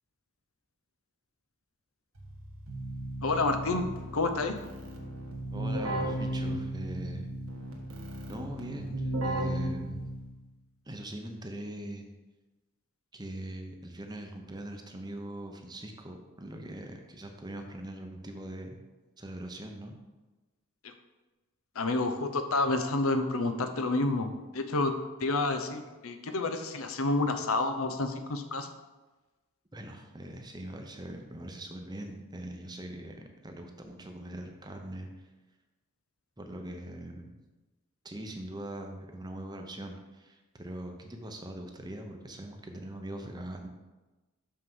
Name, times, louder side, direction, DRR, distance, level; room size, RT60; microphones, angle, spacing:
Keyboard (musical), 2.2-10.4, right 1 dB, 75° right, 1.4 m, -35 dB
voice 1, 3.2-3.8 4.1-4.5 20.8-20.9 21.7-24.9 25.2-28.7, left 2 dB, 70° left, 7 dB, 0.8 m, -29 dB
voice 2, 5.5-7.3 8.3-10.1 10.8-12.0 13.1-18.8 19.2-20.0 29.7-35.2 36.4-37.3 38.0-43.7, right 1 dB, 20° right, 4 dB, 0.7 m, -41 dB
6.5 x 5.7 x 5.5 m, 1.2 s
head